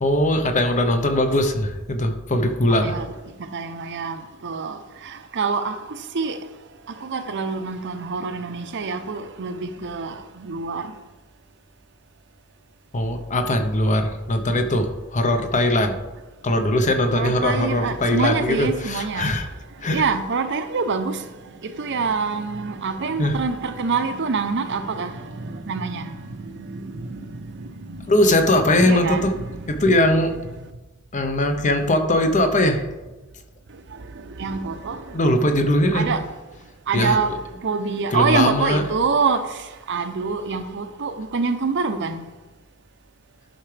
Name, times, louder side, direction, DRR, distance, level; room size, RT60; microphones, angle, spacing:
voice 1, 0.0-3.0 12.9-16.0 16.4-19.5 19.8-20.0 23.2-23.3 28.1-29.3 29.7-30.3 31.1-32.9 35.1-36.1 36.9-37.2 38.1-38.8, left 1 dB, 35° left, 0.8 m, -20 dB
voice 2, 2.7-3.1 3.4-6.4 7.0-10.9 17.1-19.3 19.9-21.2 21.5-29.8 33.9-35.4 35.9-36.3 36.9-42.2, right 4 dB, 55° right, 0.7 m, -26 dB
11.5 x 5.9 x 3.3 m
head